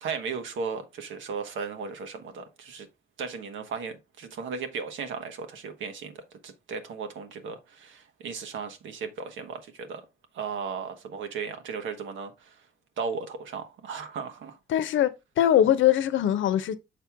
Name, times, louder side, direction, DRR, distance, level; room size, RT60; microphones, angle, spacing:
voice 1, 0.0-2.9 3.2-10.0 10.3-12.7 13.0-14.6, right 5 dB, 75° right, 1.4 m, -36 dB
voice 2, 14.7-15.1 15.4-16.7, left 11 dB, 75° left, 0.8 m, -21 dB
6.6 x 4.6 x 3.5 m
cardioid pair, 90°, 20 cm